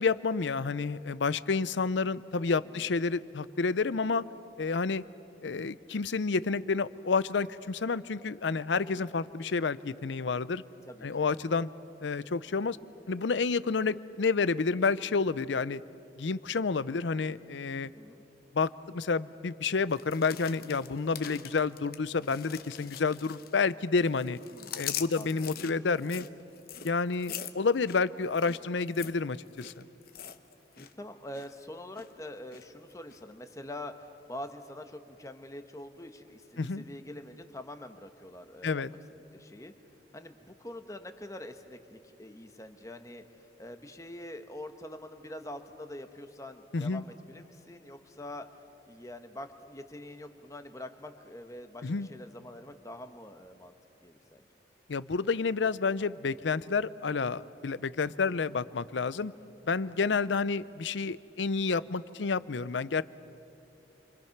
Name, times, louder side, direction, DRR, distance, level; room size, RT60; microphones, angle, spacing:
voice 1, 0.0-4.2 4.6-5.0 5.4-10.6 11.0-11.7 12.0-12.8 13.1-15.8 16.2-17.9 18.5-24.4 24.7-26.3 26.8-29.7 36.6-36.8 38.6-38.9 46.7-47.0 51.8-52.1 54.9-59.3 59.7-63.0, left 4 dB, 80° left, 17 dB, 0.6 m, -29 dB
voice 2, 10.9-11.5 17.9-18.2 24.4-24.8 25.1-25.5 30.8-33.9 34.3-38.8 39.3-39.7 40.1-43.2 43.6-48.5 48.9-53.7 54.0-54.5, left 1 dB, 15° left, 7 dB, 1.2 m, -45 dB
sound 1, 19.9-23.7 24.0-30.9 31.2-31.5 31.9-32.6 33.1-33.2, left 10 dB, 55° left, 0.9 m, -43 dB
29.0 x 25.0 x 5.9 m, 2.9 s
head